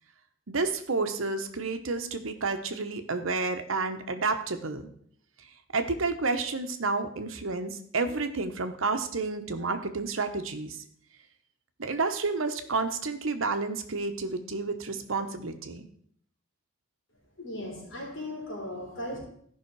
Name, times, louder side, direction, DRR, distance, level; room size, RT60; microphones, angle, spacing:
voice 1, 0.5-4.9 5.4-10.8 11.8-15.9, right 3 dB, 80° right, 7 dB, 1.0 m, -30 dB
voice 2, 17.4-19.2, left 1 dB, 65° left, -3 dB, 3.8 m, -37 dB
13.5 x 5.6 x 4.7 m, 0.63 s
head